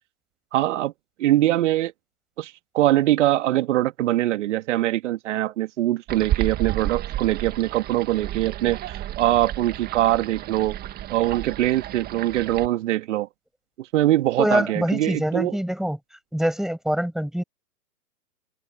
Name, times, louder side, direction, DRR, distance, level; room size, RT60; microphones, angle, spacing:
voice 1, 0.5-0.9 1.2-1.9 2.4-10.8 11.1-13.3 13.8-15.6, right 14 dB, 45° right, 2.4 m, -23 dB
sound 1, 6.1-12.7, right 13 dB, 20° right, 1.8 m, -32 dB
voice 2, 14.4-16.0 16.3-17.4, equal, ahead, 7.3 m, -24 dB
hypercardioid pair, 130°, 48 cm